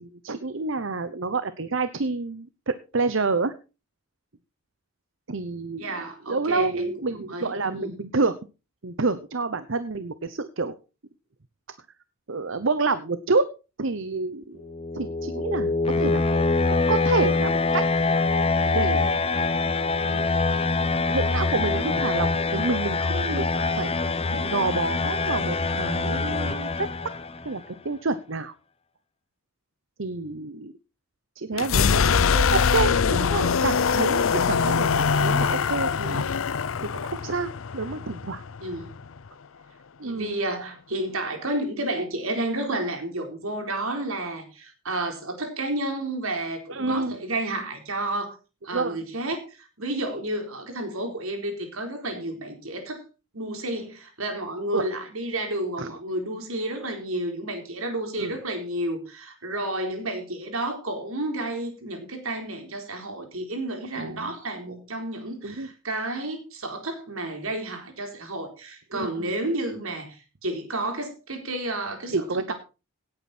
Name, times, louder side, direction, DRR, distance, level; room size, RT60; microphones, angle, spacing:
voice 1, 0.0-3.5 5.3-5.9 6.3-8.4 8.8-10.7 12.3-13.5 13.8-14.6 14.9-16.5 16.9-17.9 18.7-19.2 20.0-20.2 21.0-23.5 23.8-24.0 24.3-26.9 27.4-28.5 30.0-30.7 31.4-36.3 36.8-38.4 40.0-40.3 46.7-47.2 48.7-49.0 54.7-54.8 55.8-55.9 58.2-58.4 63.9-64.3 65.4-65.7 68.9-69.3 72.1-72.5, right 3 dB, 60° right, 13 dB, 0.9 m, -28 dB
voice 2, 5.8-6.9 7.2-7.9 38.6-38.9 40.0-48.4 48.6-53.0 53.3-72.5, right 1 dB, 75° right, 5 dB, 4.1 m, -31 dB
sound 1, 14.6-27.5, left 3 dB, 25° left, 0.8 m, -24 dB
sound 2, 31.5-39.3, left 6 dB, 70° left, 0.6 m, -23 dB
17.0 x 8.9 x 4.3 m, 0.32 s
head